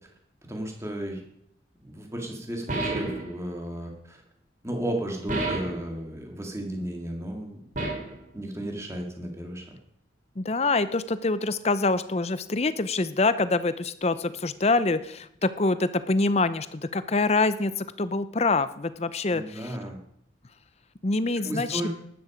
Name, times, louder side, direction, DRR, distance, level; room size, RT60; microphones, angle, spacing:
voice 1, 0.5-1.2 1.8-4.2 4.6-7.6 8.3-9.8 19.3-20.0 21.4-21.9, right 1 dB, 15° right, 2 dB, 2.3 m, -34 dB
sound 1, 2.7-3.3 5.3-5.9 7.8-8.2, right 2 dB, 45° right, 2.6 m, -29 dB
voice 2, 10.4-19.7 21.0-21.9, left 3 dB, 35° left, 14 dB, 0.6 m, -25 dB
12.5 x 10.5 x 5.1 m, 0.72 s
head